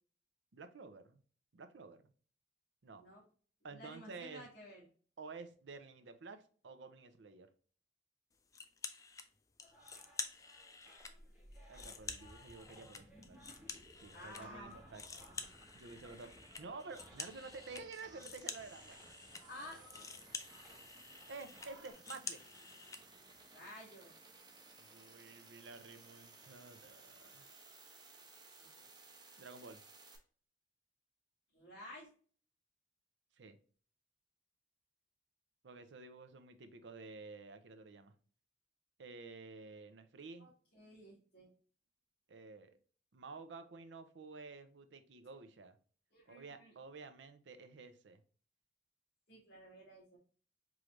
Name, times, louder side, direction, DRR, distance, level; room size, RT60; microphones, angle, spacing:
voice 1, 0.5-1.2 1.5-2.1 2.8-3.0 3.6-4.5 5.2-7.5 11.7-13.5 14.0-15.0 15.7-16.3 16.6-19.1 21.3-22.4 24.8-27.5 29.4-29.8 33.4-33.6 35.6-38.1 39.0-40.5 42.3-42.8 43.1-45.8 46.3-48.2, right 4 dB, 90° right, 0.6 m, -51 dB
voice 2, 3.7-4.8 14.1-14.8 19.5-20.1 23.5-24.1 28.7-28.9 31.5-32.1 40.4-41.5 46.1-46.7 49.3-50.2, left 1 dB, 60° left, 2.0 m, -53 dB
sound 1, 8.5-9.3 9.6-11.1 11.5-14.4 14.7-23.0, left 5 dB, 20° left, 0.4 m, -49 dB
sound 2, 9.6-21.9, equal, 5° right, 1.7 m, -63 dB
sound 3, 11.0-30.2, right 2 dB, 25° right, 0.7 m, -59 dB
4.9 x 3.1 x 2.5 m
head